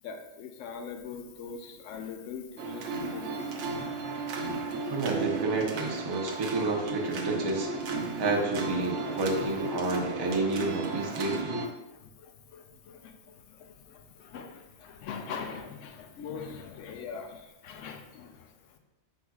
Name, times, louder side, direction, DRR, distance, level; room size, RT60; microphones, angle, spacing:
voice 1, 0.0-3.7 4.4-4.9 9.3-9.7 10.3-10.4 11.1-11.2 11.9-18.8, left 6 dB, 80° left, 5 dB, 0.9 m, -43 dB
sound 1, 2.6-11.7, right 3 dB, 70° right, 0.9 m, -34 dB
voice 2, 4.9-7.7 8.2-11.6, right 2 dB, 30° right, 0 dB, 0.5 m, -30 dB
5.9 x 3.5 x 2.3 m, 0.97 s
omnidirectional pair, 1.3 m